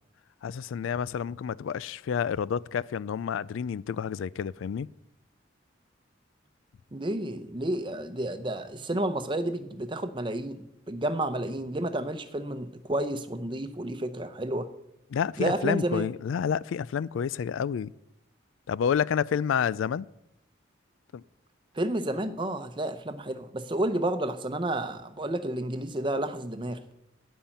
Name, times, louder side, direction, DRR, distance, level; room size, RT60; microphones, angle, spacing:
voice 1, 0.4-4.9 15.1-17.9 18.7-20.1 21.1-21.2, left 7 dB, 85° left, 0.3 m, -29 dB
voice 2, 6.9-14.7 15.4-16.1 21.7-26.8, right 1 dB, 25° right, 0.7 m, -31 dB
11.5 x 5.6 x 9.0 m
head